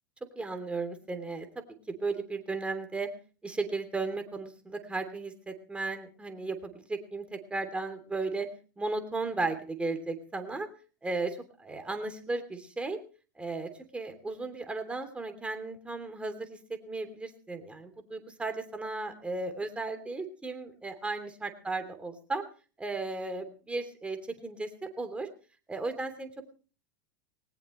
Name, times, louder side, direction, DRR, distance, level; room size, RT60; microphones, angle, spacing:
voice 1, 0.4-3.1 3.4-8.5 8.8-10.7 11.0-13.0 13.4-22.4 22.8-24.7 25.0-25.3 25.7-26.5, right 3 dB, 10° right, 7 dB, 3.1 m, -35 dB
19.0 x 19.0 x 3.2 m, 0.38 s
hypercardioid pair, 95°, 11 cm